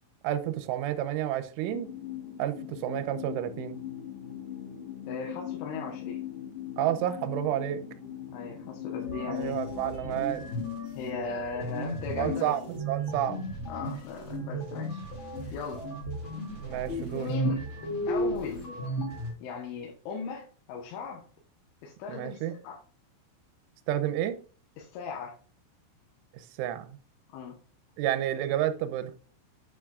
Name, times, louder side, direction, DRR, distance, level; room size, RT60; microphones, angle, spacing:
voice 1, 0.2-1.9 2.4-3.8 6.8-7.8 9.3-10.4 12.2-12.6 12.9-13.4 16.6-17.3 22.1-22.5 23.9-24.4 26.3-27.0 28.0-29.2, right 12 dB, 80° right, 3.2 m, -30 dB
sound 1, 1.7-11.5, left 11 dB, 45° left, 2.5 m, -40 dB
voice 2, 5.1-6.2 8.3-9.6 10.0-10.2 10.9-12.8 13.7-15.0 15.5-15.9 17.1-17.6 18.1-18.7 19.4-21.2 21.8-22.8 24.8-25.4 27.3-27.6, left 5 dB, 75° left, 3.5 m, -38 dB
sound 2, 9.0-19.3, equal, 30° left, 2.5 m, -34 dB
9.1 x 7.2 x 2.5 m
omnidirectional pair, 5.7 m